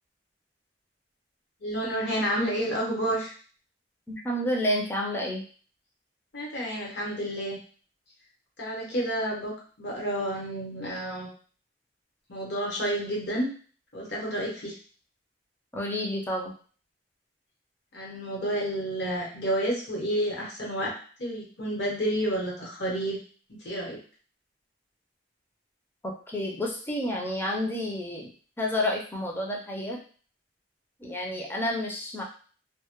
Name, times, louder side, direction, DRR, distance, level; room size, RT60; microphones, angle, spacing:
voice 1, 1.6-3.3 6.3-7.6 8.6-11.3 12.3-13.5 13.9-14.7 17.9-20.9 21.2-23.2 23.5-24.0, right 1 dB, 70° left, -3 dB, 0.9 m, -30 dB
voice 2, 4.1-5.4 15.7-16.5 26.0-28.3 28.6-30.0 31.0-32.2, left 1 dB, 10° left, -1 dB, 0.4 m, -30 dB
2.1 x 2.1 x 2.9 m, 0.42 s
head